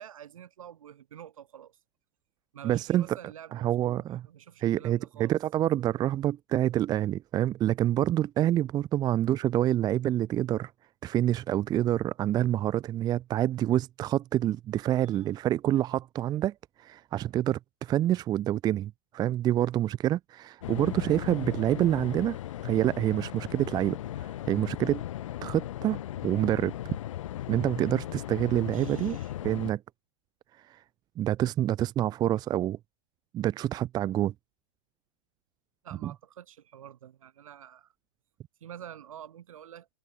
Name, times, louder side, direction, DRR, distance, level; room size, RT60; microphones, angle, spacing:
voice 1, 0.0-1.8 2.5-5.4 15.0-15.3 28.7-29.3 35.8-37.9 38.6-39.9, right 10 dB, 65° right, 3.1 m, -48 dB
voice 2, 2.6-3.2 3.5-4.2 4.6-10.7 11.0-22.4 22.6-25.0 25.4-26.7 27.5-29.2 29.4-29.8 30.7-30.8 31.2-32.8 33.3-34.3 36.0-36.1, right 12 dB, 20° right, 0.6 m, -27 dB
sound 1, 20.6-29.7, left 13 dB, 60° left, 2.7 m, -37 dB
figure-of-eight pair, 110°, 19 cm